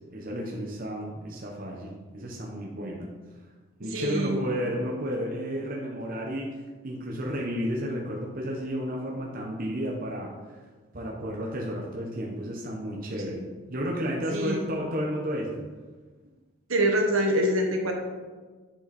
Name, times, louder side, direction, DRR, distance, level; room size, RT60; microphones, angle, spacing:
voice 1, 0.1-3.1 3.8-6.5 6.8-10.6 10.9-13.4 13.7-15.6, equal, 40° right, -2 dB, 1.1 m, -32 dB
voice 2, 3.9-4.4 13.3-13.4 14.3-14.6 16.7-17.9, right 1 dB, 70° right, 2 dB, 1.4 m, -25 dB
10.0 x 5.4 x 4.2 m, 1.4 s
head